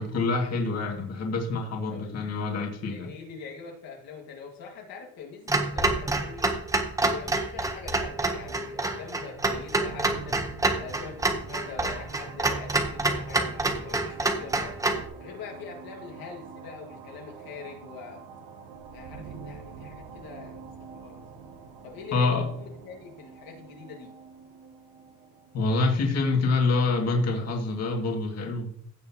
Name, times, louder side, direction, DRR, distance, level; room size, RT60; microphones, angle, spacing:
voice 1, 0.0-3.1 22.1-22.5 25.5-28.7, left 3 dB, 40° left, 1 dB, 2.0 m, -26 dB
voice 2, 1.9-2.2 2.9-6.5 7.0-10.4 10.8-14.8 15.2-18.2 18.9-20.6 20.9-21.4 21.8-24.1, left 5 dB, 65° left, 0 dB, 1.9 m, -43 dB
Clock, 5.5-15.1, right 2 dB, 10° right, 0.7 m, -27 dB
sound 1, 9.5-27.1, right 5 dB, 90° right, 1.5 m, -46 dB
15.5 x 6.6 x 2.8 m, 0.64 s
cardioid pair, 165°, 39 cm